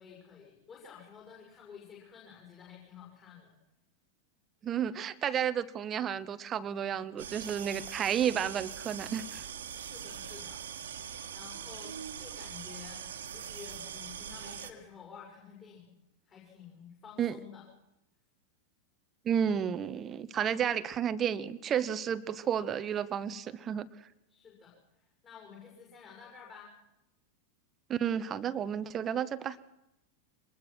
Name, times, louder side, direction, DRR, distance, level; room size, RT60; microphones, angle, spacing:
voice 1, 0.0-3.5 9.7-10.6 11.3-16.0 16.3-17.6 24.3-24.7 25.2-26.7, left 7 dB, 25° left, -2 dB, 6.3 m, -51 dB
voice 2, 4.6-9.4 17.2-17.4 19.2-23.9 27.9-29.6, right 8 dB, 25° right, 14 dB, 1.0 m, -32 dB
sound 1, 7.2-14.7, right 8 dB, 65° right, 1.7 m, -42 dB
23.5 x 20.0 x 6.2 m, 0.89 s
figure-of-eight pair, 90°, 0 cm